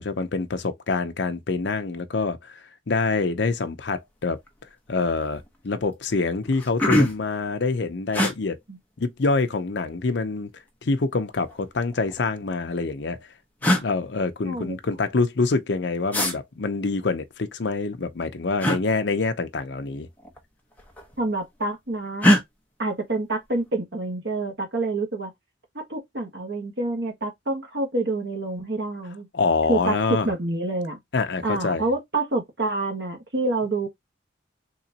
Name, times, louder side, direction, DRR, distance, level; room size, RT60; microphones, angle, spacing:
voice 1, 0.0-2.6 2.9-4.4 4.9-8.6 9.0-10.5 10.8-13.2 13.8-20.1 29.3-30.3 31.1-31.8, left 3 dB, 60° left, 0.6 m, -26 dB
sound 1, 4.4-4.7 5.0-5.5 6.0-6.1 6.4-7.3 8.1-8.3 9.6-10.2 11.4-12.2 13.1-13.2 13.6-13.9 16.1-16.3 18.6-18.8 20.2-20.4 20.7-21.3 22.2-22.4, equal, 10° left, 0.8 m, -23 dB
voice 2, 14.4-14.8 21.2-22.3 22.8-25.3 25.7-29.3 29.7-30.0 30.2-31.0 31.4-33.9, right 2 dB, 55° right, 1.4 m, -27 dB
3.9 x 2.9 x 2.8 m
head